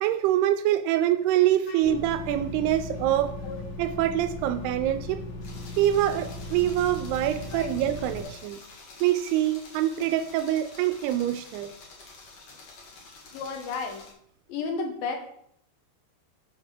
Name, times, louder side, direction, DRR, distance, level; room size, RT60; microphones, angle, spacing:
voice 1, 0.0-3.4 3.8-5.2 5.8-8.6 9.0-11.7, right 12 dB, 85° right, 11 dB, 2.4 m, -25 dB
voice 2, 1.7-2.0 3.4-3.6 7.5-7.7 8.2-8.3 13.3-14.0 14.5-15.2, left 4 dB, 70° left, 4 dB, 2.5 m, -33 dB
sound 1, 1.8-8.2, left 2 dB, 90° left, 4.0 m, -38 dB
sound 2, 5.4-14.1, left 3 dB, 50° left, 2.1 m, -48 dB
7.6 x 5.2 x 6.5 m, 0.70 s
omnidirectional pair, 4.9 m